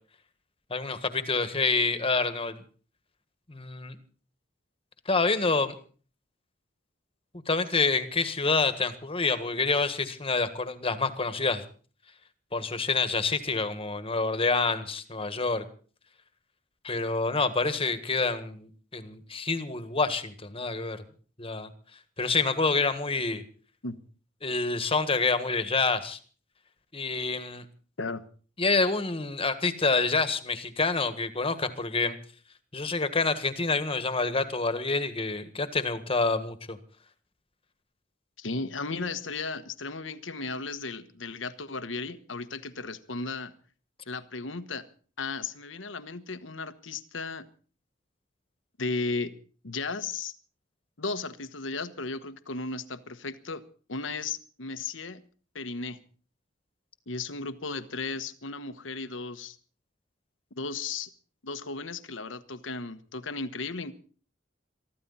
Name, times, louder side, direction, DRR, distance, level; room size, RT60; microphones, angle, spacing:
voice 1, 0.7-2.6 3.5-3.9 5.0-5.7 7.5-11.6 12.5-15.6 16.8-21.0 21.4-21.7 22.2-23.4 24.4-26.2 26.9-27.6 28.6-32.2 32.7-36.8, left 3 dB, 30° left, 11 dB, 1.6 m, -27 dB
voice 2, 38.4-43.5 44.1-44.9 45.2-47.5 48.8-49.3 49.6-50.3 51.0-53.6 53.9-55.2 55.5-56.0 57.1-59.6 60.5-61.1 61.4-63.9, left 3 dB, 80° left, 12 dB, 1.3 m, -35 dB
23.5 x 14.0 x 4.2 m, 0.41 s
head